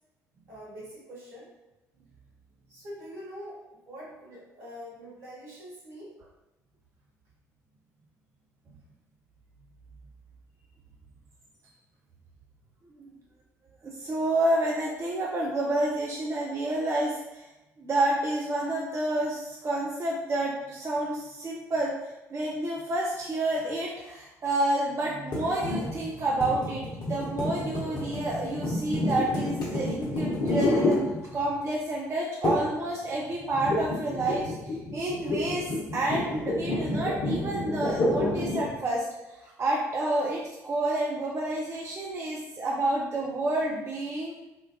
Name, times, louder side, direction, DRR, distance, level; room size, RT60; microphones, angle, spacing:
voice 1, 0.5-1.5 2.7-6.2, equal, 70° right, -8 dB, 1.4 m, -44 dB
voice 2, 13.8-17.4 17.8-21.9 22.3-31.0 31.3-34.5 34.9-35.7 35.9-39.1 39.4-44.3, right 1 dB, 30° right, -3 dB, 0.5 m, -29 dB
sound 1, 25.3-31.6 32.4-32.8 33.1-38.8, left 1 dB, 55° left, 0.8 m, -29 dB
3.7 x 2.3 x 2.2 m, 1.0 s
figure-of-eight pair, 50°, 9 cm